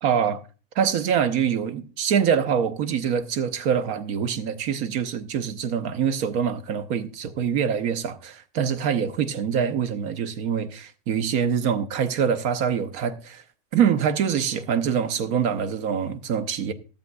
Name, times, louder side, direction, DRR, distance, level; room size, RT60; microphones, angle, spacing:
voice 1, 0.0-0.4 0.8-13.4 13.7-16.7, right 7 dB, 75° right, 1.3 m, -24 dB
14.0 x 12.5 x 2.3 m
omnidirectional pair, 1.6 m